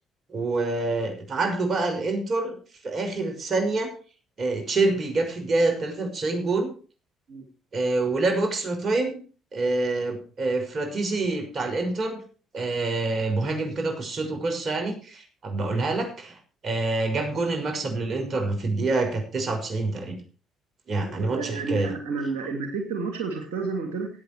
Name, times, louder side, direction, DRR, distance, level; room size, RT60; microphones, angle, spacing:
voice 1, 0.3-2.5 2.8-3.9 4.4-6.7 7.7-9.2 9.5-12.2 12.5-16.4 16.6-20.2 20.9-21.9, right 3 dB, 50° right, 5 dB, 6.2 m, -26 dB
voice 2, 21.0-24.1, right 4 dB, 80° right, 4 dB, 2.7 m, -31 dB
19.0 x 8.6 x 4.8 m, 0.38 s
hypercardioid pair, 55°, 0 cm